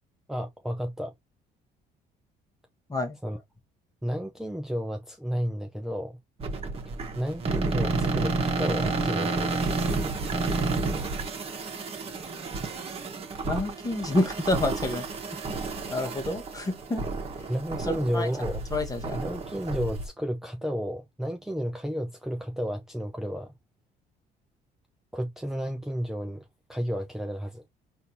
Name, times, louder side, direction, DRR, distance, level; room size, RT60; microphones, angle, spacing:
voice 1, 0.3-1.1 3.2-3.4 4.0-6.2 7.2-9.7 17.5-18.6 19.1-23.5 25.1-26.4 26.7-27.6, equal, ahead, 0.6 m, -32 dB
sound 1, 6.4-20.1, right 3 dB, 35° right, 1.2 m, -31 dB
voice 2, 13.4-15.4 15.9-17.0 17.4-17.5 17.8-18.3 18.7-19.2, left 2 dB, 20° left, 1.2 m, -29 dB
4.2 x 2.7 x 2.8 m
cardioid pair, 110°, 17 cm